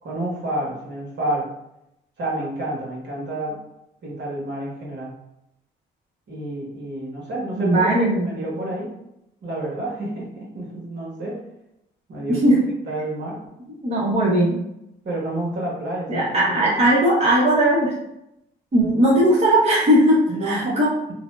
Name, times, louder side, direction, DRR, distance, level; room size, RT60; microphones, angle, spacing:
voice 1, 0.0-1.5 2.2-3.6 4.0-5.1 6.3-7.9 8.2-8.9 9.4-11.4 12.1-12.6 12.9-13.4 15.0-16.9 20.3-20.8, right 1 dB, 60° right, -4 dB, 1.2 m, -29 dB
voice 2, 7.6-8.3 12.3-12.6 13.7-14.6 16.1-17.9 18.7-20.9, right 1 dB, 30° right, -6 dB, 0.9 m, -18 dB
2.7 x 2.1 x 3.1 m, 0.83 s
cardioid pair, 90°, 20 cm